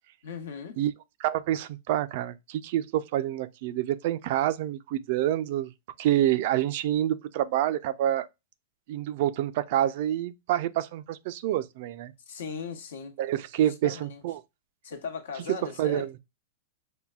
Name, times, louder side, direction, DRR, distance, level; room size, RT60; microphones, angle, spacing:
voice 1, 0.2-0.8 12.3-13.2 13.6-14.2 14.8-16.1, left 6 dB, 80° left, 1.0 m, -38 dB
voice 2, 1.2-5.7 6.0-8.3 8.9-12.1 13.2-14.4 15.8-16.1, right 12 dB, 55° right, 0.4 m, -27 dB
5.5 x 2.2 x 2.2 m
supercardioid pair, 145°, 0 cm